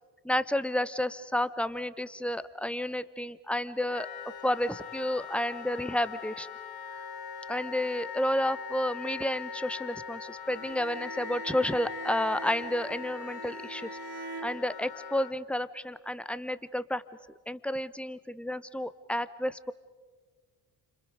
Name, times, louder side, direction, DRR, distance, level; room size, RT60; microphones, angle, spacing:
voice 1, 0.2-4.1 4.4-6.5 7.5-13.9 14.4-17.0 17.5-19.7, left 1 dB, ahead, 15 dB, 1.0 m, -31 dB
Wind instrument woodwind instrument, 3.9-15.3, left 7 dB, 50° left, 1.5 m, -41 dB
Bowed string instrument, 10.5-15.1, right 7 dB, 50° right, 2.9 m, -45 dB
30.0 x 27.0 x 5.2 m, 1.5 s
hypercardioid pair, 50°, 48 cm